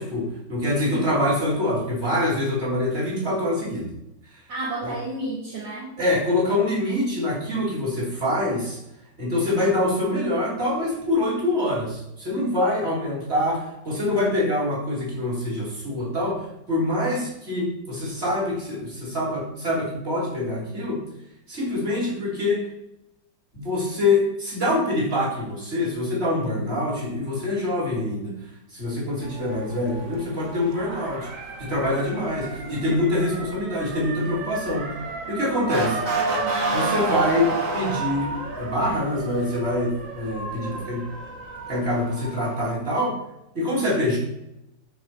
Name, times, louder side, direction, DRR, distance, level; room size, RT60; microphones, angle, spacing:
voice 1, 0.0-3.9 4.8-4.9 6.0-8.8 9.2-21.0 21.5-22.7 23.5-28.4 28.7-31.3 31.6-34.9 35.3-36.1 36.7-41.1 41.7-43.2 43.6-44.2, left 1 dB, 35° right, -5 dB, 3.6 m, -25 dB
voice 2, 0.7-1.2 4.5-6.0 32.6-32.7, right 2 dB, 65° right, -4 dB, 2.2 m, -31 dB
Motor vehicle (road) / Siren, 29.2-42.7, right 3 dB, 50° right, 1.7 m, -31 dB
9.9 x 7.0 x 4.7 m, 0.85 s
omnidirectional pair, 1.9 m